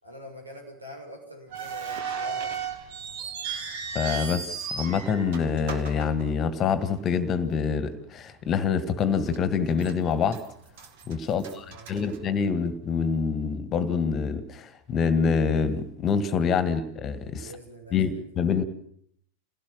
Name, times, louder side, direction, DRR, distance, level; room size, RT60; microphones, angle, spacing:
voice 1, 0.0-2.5 11.2-12.2 17.4-18.2 18.5-18.6, equal, 80° right, 2 dB, 6.6 m, -45 dB
sound 1, 1.5-6.8 7.1-7.2 8.0-8.2 8.6-8.7 9.3-9.9 10.3-12.7, right 6 dB, 50° right, 2.6 m, -35 dB
voice 2, 3.9-10.4 11.1-17.5 17.9-18.6, left 6 dB, 30° left, 13 dB, 2.0 m, -26 dB
28.0 x 17.5 x 7.6 m, 0.70 s
figure-of-eight pair, 90°, 0 cm